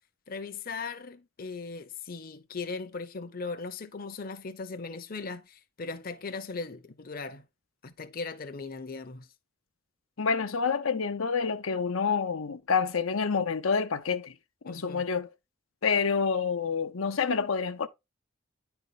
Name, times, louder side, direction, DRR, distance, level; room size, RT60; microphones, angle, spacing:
voice 1, 0.3-7.5 7.8-9.3 14.7-15.0, left 4 dB, 45° left, 0.8 m, -38 dB
voice 2, 10.2-14.3 14.6-15.3 15.8-17.9, left 5 dB, 85° left, 0.8 m, -28 dB
10.0 x 4.5 x 4.0 m
head